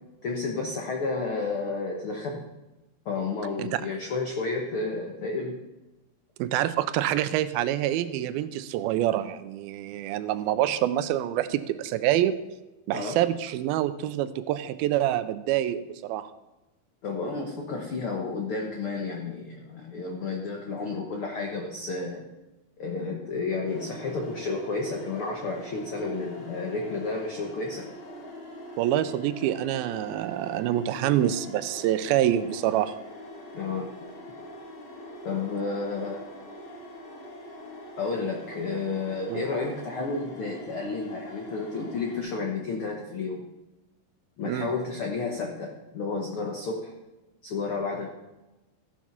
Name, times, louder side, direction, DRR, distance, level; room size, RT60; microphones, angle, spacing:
voice 1, 0.2-2.4 3.0-5.6 12.9-13.2 17.0-22.2 22.8-27.9 33.5-33.9 35.2-36.2 38.0-43.4 44.4-46.9 47.4-48.1, left 3 dB, 90° left, 1 dB, 1.1 m, -31 dB
voice 2, 6.4-12.4 12.9-16.3 28.8-33.0 39.3-39.4 44.4-44.7, right 12 dB, 85° right, 13 dB, 2.4 m, -26 dB
sound 1, 23.7-42.2, left 1 dB, 45° left, 2.1 m, -43 dB
15.0 x 7.2 x 5.9 m, 1.0 s
omnidirectional pair, 4.4 m